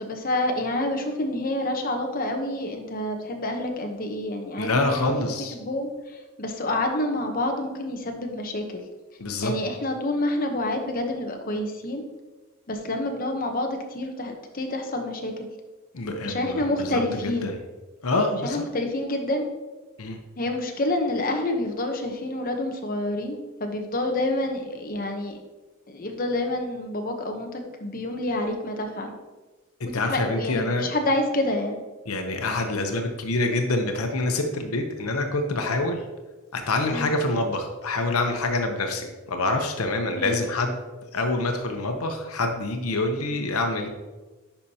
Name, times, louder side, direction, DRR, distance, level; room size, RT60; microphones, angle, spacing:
voice 1, 0.0-5.2 5.5-8.8 9.4-12.0 12.7-15.5 16.2-17.5 18.4-19.5 20.4-25.4 25.9-29.1 29.9-31.8 36.9-37.1 40.2-40.4 43.1-43.4, left 1 dB, 40° left, 3 dB, 0.9 m, -28 dB
voice 2, 4.6-5.5 9.2-9.5 15.9-17.6 18.0-18.6 20.0-20.2 29.8-30.9 32.1-36.0 36.5-40.8 41.1-43.9, left 2 dB, 85° left, 4 dB, 0.9 m, -26 dB
10.0 x 5.4 x 2.9 m, 1.2 s
head